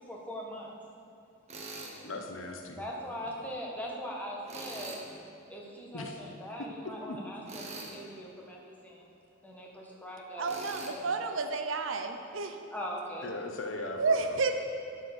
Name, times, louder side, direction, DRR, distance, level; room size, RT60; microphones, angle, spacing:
voice 1, 0.1-0.7 2.8-5.0 5.5-9.1 9.4-10.5 10.8-11.6 12.7-13.3, equal, 10° left, -2 dB, 1.4 m, -41 dB
Tools, 1.5-2.0 4.5-5.1 7.5-8.0 10.4-10.9, right 3 dB, 35° right, 1.1 m, -42 dB
voice 2, 2.0-2.8 5.9-6.2 7.1-7.2 13.2-14.4, left 2 dB, 70° left, 3 dB, 0.9 m, -39 dB
voice 3, 10.4-12.6 14.0-14.5, right 4 dB, 75° right, 6 dB, 0.7 m, -30 dB
11.5 x 4.5 x 6.7 m, 2.7 s
head